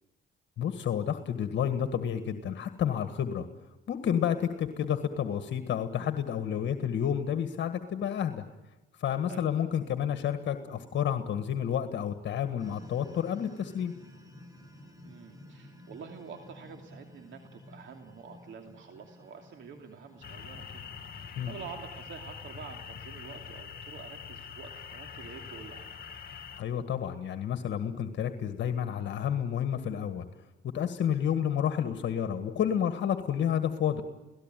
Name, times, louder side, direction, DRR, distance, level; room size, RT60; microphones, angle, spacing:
voice 1, 0.6-3.4 3.9-8.4 9.0-13.9 21.3-21.5 26.6-30.3 30.7-34.0, left 9 dB, 65° left, 9 dB, 1.7 m, -30 dB
sound 1, 12.6-23.6, left 1 dB, 20° right, 7.0 m, -53 dB
voice 2, 15.0-20.8 21.1-26.0, right 6 dB, 70° right, 4 dB, 2.8 m, -47 dB
sound 2, 20.2-26.6, left 6 dB, 50° left, 2.2 m, -44 dB
30.0 x 18.0 x 9.2 m, 1.1 s
cardioid pair, 90°, 20 cm